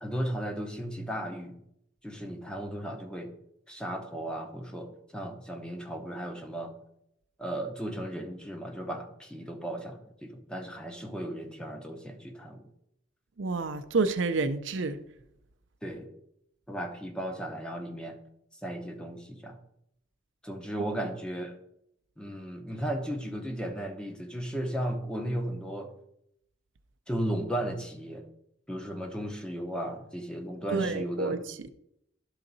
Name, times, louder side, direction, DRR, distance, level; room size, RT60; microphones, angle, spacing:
voice 1, 0.0-1.6 2.0-3.3 3.7-6.7 7.4-12.7 15.8-16.1 16.7-18.2 18.6-19.6 20.4-21.6 22.2-25.9 27.1-28.3 28.7-31.4, right 1 dB, 5° left, 3 dB, 0.8 m, -35 dB
voice 2, 13.4-15.0 30.7-31.7, right 3 dB, 70° right, 9 dB, 0.5 m, -29 dB
11.5 x 3.9 x 4.0 m, 0.77 s
head